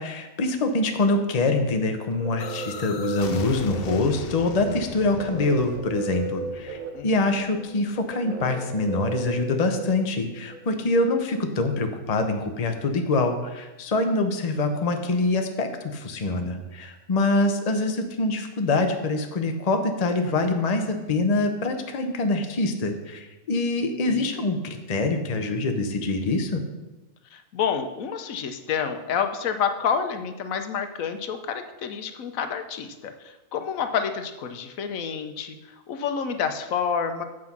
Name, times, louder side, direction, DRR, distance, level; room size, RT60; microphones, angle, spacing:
voice 1, 0.0-26.6, left 2 dB, 35° left, 5 dB, 0.8 m, -25 dB
sound 1, 1.9-10.6, right 5 dB, 85° right, 1.4 m, -35 dB
sound 2, 2.4-8.1, left 7 dB, 60° left, 0.7 m, -39 dB
voice 2, 6.9-7.3 24.1-24.3 27.3-35.6 35.9-37.2, left 7 dB, 80° left, 8 dB, 1.1 m, -29 dB
7.5 x 6.2 x 5.9 m, 1.1 s
omnidirectional pair, 1.4 m